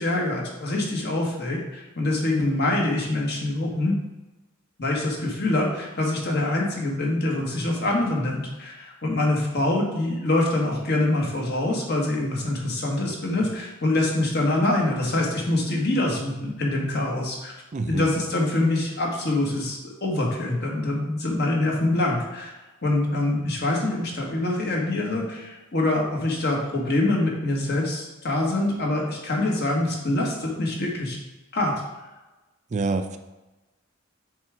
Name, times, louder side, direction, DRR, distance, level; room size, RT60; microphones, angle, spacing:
voice 1, 0.0-3.9 4.8-17.5 17.9-22.5 22.8-31.2 31.5-31.7, left 2 dB, 55° left, -1 dB, 1.5 m, -25 dB
voice 2, 17.7-18.1 32.7-33.2, right 3 dB, 35° right, 8 dB, 0.4 m, -26 dB
7.3 x 3.4 x 4.9 m, 1.1 s
head